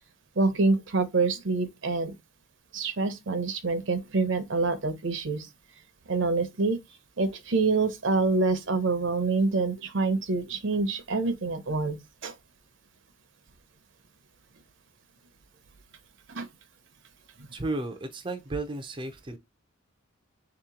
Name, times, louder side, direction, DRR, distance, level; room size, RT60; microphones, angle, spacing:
voice 1, 0.4-2.1 2.7-5.5 6.1-6.8 7.2-12.0 12.2-12.3 16.3-16.5, right 3 dB, 60° right, 0.7 m, -26 dB
voice 2, 17.5-19.4, right 2 dB, 25° right, 0.4 m, -33 dB
3.5 x 2.9 x 3.6 m
head